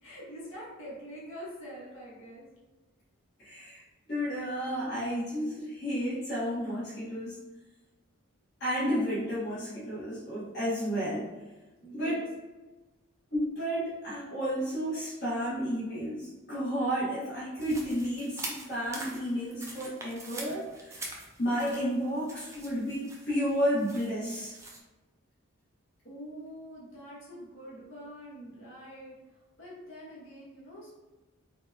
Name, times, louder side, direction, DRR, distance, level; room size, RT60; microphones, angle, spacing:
voice 1, 0.0-2.4 11.8-12.3 26.0-30.9, equal, 65° left, -7 dB, 1.3 m, -45 dB
voice 2, 3.4-7.4 8.6-11.3 11.9-12.2 13.3-21.1 21.4-24.5, equal, 50° left, -11 dB, 1.2 m, -32 dB
sound 1, 17.6-24.8, right 2 dB, 15° right, 0.4 m, -44 dB
4.2 x 2.3 x 2.7 m, 1.1 s
head